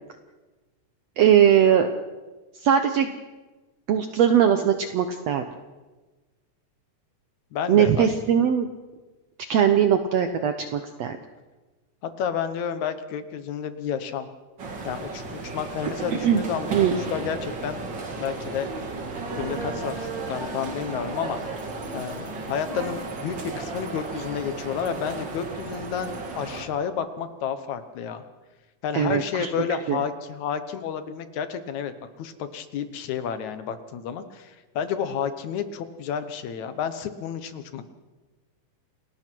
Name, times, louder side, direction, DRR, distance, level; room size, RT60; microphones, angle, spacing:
voice 1, 1.2-1.9 2.6-3.1 3.9-5.4 7.7-8.7 9.5-11.2 16.2-16.4 16.7-17.0 28.9-29.5 29.9-30.0, right 9 dB, 65° right, 7 dB, 1.8 m, -20 dB
voice 2, 7.5-8.1 12.0-14.3 14.8-17.8 18.2-18.7 19.4-21.4 21.9-28.2 28.8-31.9 32.2-37.8, left 7 dB, 70° left, 10 dB, 2.3 m, -31 dB
sound 1, 14.6-26.7, right 3 dB, 40° right, 2.4 m, -34 dB
29.0 x 19.5 x 4.6 m, 1.2 s
omnidirectional pair, 3.7 m